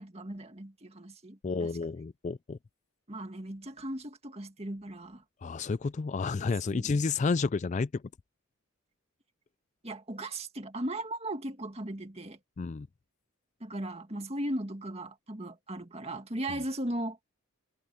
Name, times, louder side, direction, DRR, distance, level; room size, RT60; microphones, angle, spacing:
voice 1, 0.0-1.7 3.1-5.2 6.7-7.0 9.8-12.4 13.6-17.2, right 1 dB, 30° right, 2.1 m, -37 dB
voice 2, 1.4-2.6 5.4-8.0 12.6-12.9, left 4 dB, 35° left, 0.3 m, -30 dB
head